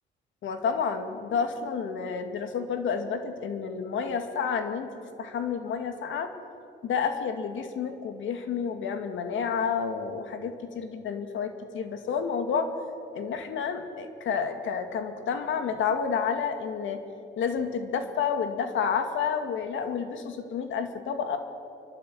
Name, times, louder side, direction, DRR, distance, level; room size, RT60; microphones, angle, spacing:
voice 1, 0.4-4.9 5.2-6.3 6.8-12.7 13.1-17.0 17.4-21.4, left 6 dB, 75° left, 7 dB, 2.4 m, -30 dB
29.5 x 12.5 x 8.9 m, 2.7 s
cardioid pair, 90°, 20 cm